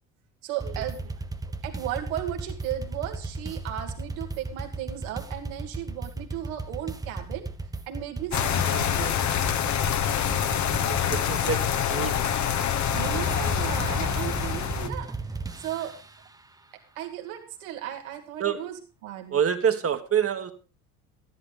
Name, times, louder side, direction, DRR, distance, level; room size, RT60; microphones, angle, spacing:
voice 1, 0.4-1.1 1.6-7.5 7.9-9.2 12.9-15.1 15.6-16.0 16.7-18.8 19.0-19.4, right 11 dB, 75° right, 4 dB, 2.4 m, -35 dB
sound 1, 0.6-16.2, right 3 dB, 10° right, 0.9 m, -35 dB
sound 2, 8.3-14.9, left 9 dB, 40° left, 1.2 m, -26 dB
voice 2, 10.8-12.2 12.8-13.0 15.5-15.6 18.4-18.6 19.3-20.5, right 8 dB, 35° right, 8 dB, 1.6 m, -27 dB
13.5 x 11.0 x 3.8 m, 0.35 s
hypercardioid pair, 65°, 42 cm